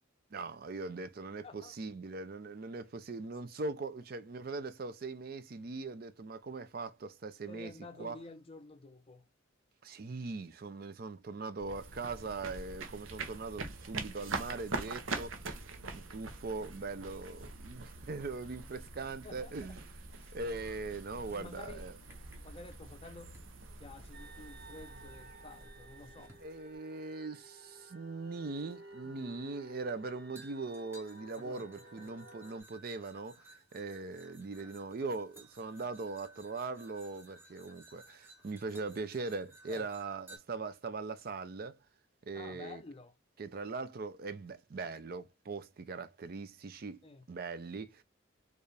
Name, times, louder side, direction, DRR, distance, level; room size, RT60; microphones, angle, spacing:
voice 1, 0.3-7.7 8.0-8.2 9.8-15.3 15.9-19.7 20.3-21.9 26.4-33.4 33.7-41.8 42.3-42.8 43.4-47.0 47.3-48.0, right 3 dB, 50° right, 0.4 m, -40 dB
voice 2, 1.4-1.8 7.5-9.2 18.9-19.7 20.2-20.4 21.3-21.8 22.4-23.4 23.8-26.3 29.0-29.4 31.4-32.2 39.7-39.9 42.3-43.1 47.0-47.3, left 3 dB, 30° left, 0.5 m, -51 dB
sound 1, 11.6-26.7, right 3 dB, 85° right, 0.8 m, -44 dB
sound 2, 21.0-23.0 23.3-23.6 25.0-25.1 26.3-26.5 27.8-27.9 30.4-40.4, right 1 dB, 10° right, 0.9 m, -58 dB
sound 3, 24.1-32.6, right 2 dB, 65° right, 1.0 m, -54 dB
4.5 x 2.5 x 3.2 m
head